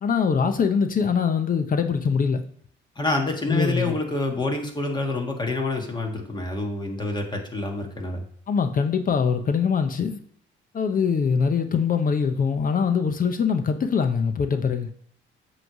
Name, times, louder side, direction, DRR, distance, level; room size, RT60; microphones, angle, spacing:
voice 1, 0.0-2.4 3.5-4.0 8.5-10.2 10.7-14.9, left 6 dB, 45° left, 0.7 m, -23 dB
voice 2, 2.9-8.2, left 2 dB, 20° left, 1.6 m, -27 dB
7.6 x 3.2 x 5.9 m
cardioid pair, 90°, 20 cm